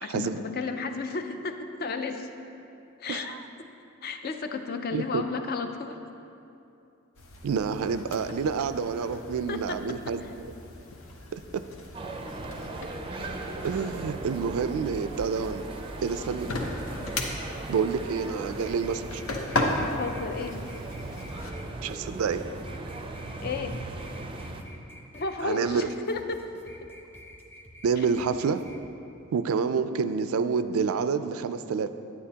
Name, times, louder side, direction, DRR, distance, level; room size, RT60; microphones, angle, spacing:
voice 1, 0.0-2.3 3.0-3.7 4.0-6.0 9.5-10.3 19.8-20.6 23.4-23.8 25.1-26.4 26.8-26.9 28.0-28.1, left 4 dB, 45° left, 7 dB, 0.5 m, -33 dB
voice 2, 3.1-3.4 4.9-5.2 7.4-10.3 11.3-11.6 13.6-15.7 16.0-16.6 17.7-19.2 21.8-22.4 25.4-25.9 27.8-28.6 29.3-31.9, right 5 dB, 85° right, 11 dB, 0.3 m, -28 dB
sound 1, 7.1-21.5, left 2 dB, 70° left, 0.8 m, -37 dB
sound 2, 11.9-24.6, right 2 dB, 25° right, 0.4 m, -38 dB
sound 3, 18.2-28.8, equal, 10° left, 0.7 m, -49 dB
9.4 x 8.7 x 2.8 m, 2.7 s
head